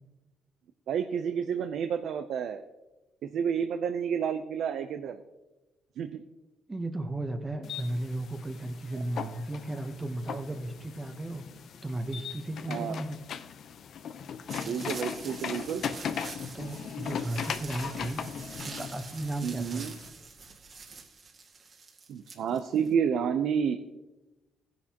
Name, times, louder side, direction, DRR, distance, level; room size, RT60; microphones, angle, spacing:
voice 1, 0.9-2.6 3.2-5.2 6.0-6.2 12.7-13.0 14.7-15.8 19.4-19.9 22.1-23.8, right 7 dB, 75° right, 8 dB, 0.6 m, -30 dB
voice 2, 6.7-11.4 11.8-13.2 16.5-18.2 18.6-19.9, right 1 dB, 20° right, 5 dB, 1.0 m, -35 dB
sound 1, 7.6-20.1, left 7 dB, 65° left, 0.7 m, -39 dB
sound 2, 14.5-22.9, right 4 dB, 50° right, 2.0 m, -46 dB
16.5 x 10.0 x 2.9 m, 1.1 s
cardioid pair, 90°, 0 cm